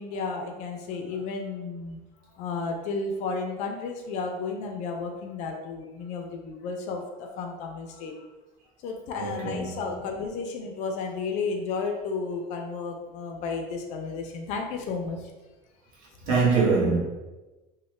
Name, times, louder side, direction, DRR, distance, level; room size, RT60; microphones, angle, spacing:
voice 1, 0.0-2.0 2.4-8.1 8.8-15.2, left 4 dB, 45° left, 2 dB, 0.4 m, -33 dB
voice 2, 9.2-10.1 16.3-17.0, right 4 dB, 55° right, -5 dB, 1.0 m, -24 dB
3.0 x 2.1 x 3.1 m, 1.1 s
cardioid pair, 175°, 17 cm